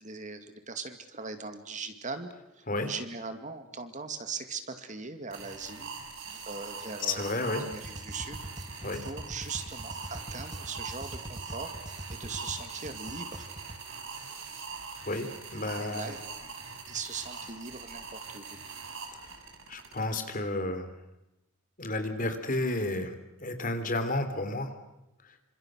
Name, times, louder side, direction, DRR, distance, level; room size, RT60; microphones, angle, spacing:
voice 1, 0.0-2.3 2.6-5.9 6.5-7.2 7.6-8.4 9.0-11.7 12.1-13.5 15.8-16.2 16.9-18.6, right 4 dB, 35° right, 8 dB, 2.3 m, -40 dB
sound 1, 5.3-20.0, right 5 dB, 60° right, 6.4 m, -42 dB
voice 2, 7.0-7.7 8.8-9.0 15.1-15.3 15.5-16.1 19.2-19.3 19.7-20.9 21.8-23.2 23.4-24.7 25.2-25.3, left 2 dB, 40° left, 8 dB, 3.4 m, -31 dB
sound 2, 7.7-13.8, right 1 dB, 20° right, 1.4 m, -43 dB
28.5 x 26.5 x 6.5 m, 0.90 s
head